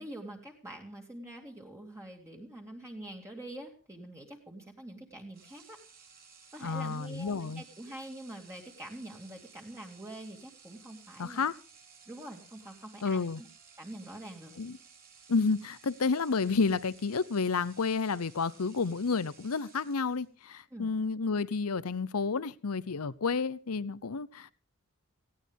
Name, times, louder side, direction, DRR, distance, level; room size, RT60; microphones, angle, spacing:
voice 1, 0.0-5.8 6.5-11.4 12.1-13.5 13.8-14.5 20.7-20.9, right 1 dB, 15° right, 2.4 m, -45 dB
sound 1, 5.3-20.4, right 6 dB, 45° right, 4.5 m, -57 dB
voice 2, 6.6-7.6 11.2-11.5 13.0-13.4 14.6-14.8 15.3-24.5, left 4 dB, 80° left, 0.8 m, -30 dB
19.0 x 16.5 x 3.6 m
head